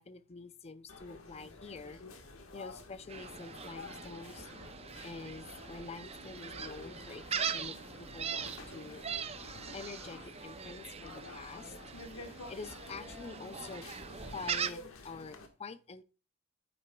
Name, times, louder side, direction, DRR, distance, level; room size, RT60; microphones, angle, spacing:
voice 1, 0.0-2.0 2.5-4.5 5.0-9.0 9.7-11.7 12.5-13.9 14.3-16.0, left 4 dB, 30° left, 0.5 m, -47 dB
sound 1, 0.9-15.5, left 2 dB, 75° left, 1.4 m, -50 dB
Gull seagull, 3.1-14.7, right 7 dB, 30° right, 0.5 m, -41 dB
9.5 x 8.8 x 2.2 m
head